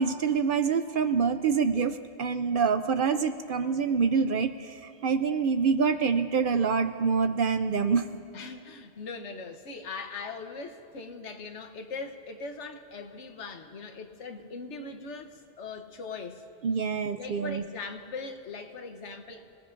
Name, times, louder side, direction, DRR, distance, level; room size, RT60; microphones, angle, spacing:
voice 1, 0.0-8.1 16.6-17.6, right 5 dB, 60° right, 9 dB, 0.6 m, -26 dB
voice 2, 8.3-16.4 17.2-19.5, left 4 dB, 80° left, 6 dB, 1.3 m, -40 dB
28.0 x 17.5 x 2.6 m, 2.6 s
omnidirectional pair, 1.2 m